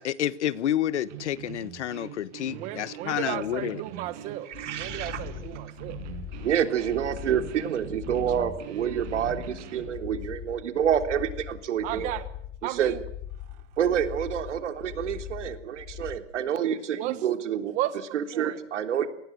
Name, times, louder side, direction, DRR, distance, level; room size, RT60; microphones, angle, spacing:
voice 1, 0.0-3.8, left 11 dB, 75° left, 1.3 m, -29 dB
sound 1, 1.1-9.9, right 9 dB, 40° right, 6.7 m, -42 dB
voice 2, 2.5-4.5 4.8-6.0 11.8-12.2 12.6-13.0 16.9-17.1 17.7-18.6, right 15 dB, 20° right, 1.4 m, -34 dB
sound 2, 4.5-16.2, left 11 dB, 30° left, 3.1 m, -41 dB
voice 3, 4.5-5.2 6.4-12.2 12.6-13.0 13.8-17.7 18.1-19.1, right 9 dB, 85° right, 3.6 m, -28 dB
28.5 x 19.5 x 8.0 m
supercardioid pair, 180°, 35 cm